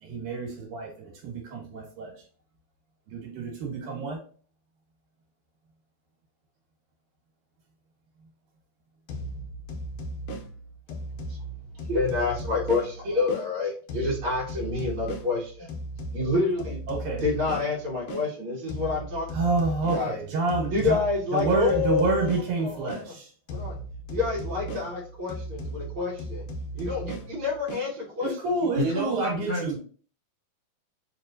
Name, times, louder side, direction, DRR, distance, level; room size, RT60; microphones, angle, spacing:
voice 1, 0.0-2.1 3.1-4.2 16.9-17.2 19.3-21.0 21.3-23.3 28.2-29.8, right 3 dB, 80° right, 0 dB, 2.6 m, -28 dB
sound 1, 9.1-13.5 13.9-18.3 18.7-23.1 23.5-27.9, right 1 dB, 70° left, 1.4 m, -37 dB
voice 2, 11.7-15.7 16.1-16.8 17.2-19.3 19.9-20.1 20.7-23.1 23.5-23.8 24.1-26.5 26.7-28.7, left 3 dB, 55° right, -6 dB, 1.6 m, -28 dB
voice 3, 28.8-29.8, equal, 35° left, -8 dB, 0.4 m, -29 dB
4.7 x 3.0 x 2.6 m, 0.42 s
omnidirectional pair, 3.5 m